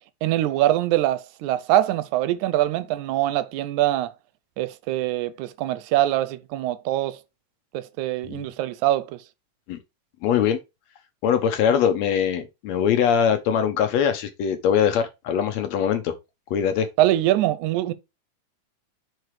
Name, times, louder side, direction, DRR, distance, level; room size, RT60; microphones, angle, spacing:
voice 1, 0.2-4.1 4.6-7.2 7.7-9.2 17.0-17.9, right 14 dB, 80° right, 1.9 m, -23 dB
voice 2, 10.2-10.6 11.2-16.1 16.5-16.9, left 8 dB, 75° left, 1.7 m, -22 dB
4.7 x 4.5 x 4.8 m
omnidirectional pair, 3.6 m